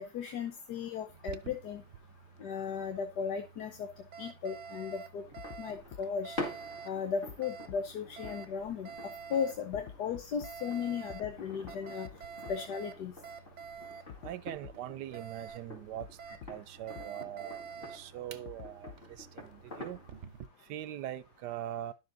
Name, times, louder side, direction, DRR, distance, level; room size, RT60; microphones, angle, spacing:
voice 1, 0.0-1.8 2.4-3.9 4.2-5.2 5.6-6.4 6.8-8.9 9.3-12.1 12.5-13.1, left 6 dB, 80° left, 1.5 m, -36 dB
Alarm, 1.1-20.5, right 6 dB, 55° right, 0.9 m, -49 dB
sound 1, 5.2-20.2, left 2 dB, 30° left, 3.5 m, -48 dB
sound 2, 5.4-5.6 5.9-6.0 7.3-7.4 7.7-7.8 8.2-8.3 9.7-10.5 11.1-11.3 11.6-11.7 12.0-12.1 12.5-12.6 14.1-14.3 14.6-14.7 16.0-16.1 16.4-16.5 17.0-17.1 18.5-19.2, left 8 dB, 55° left, 1.0 m, -46 dB
voice 2, 14.2-16.1 16.5-17.6 17.9-20.0 20.6-21.9, right 12 dB, 90° right, 1.2 m, -41 dB
11.5 x 6.9 x 3.9 m
omnidirectional pair, 1.7 m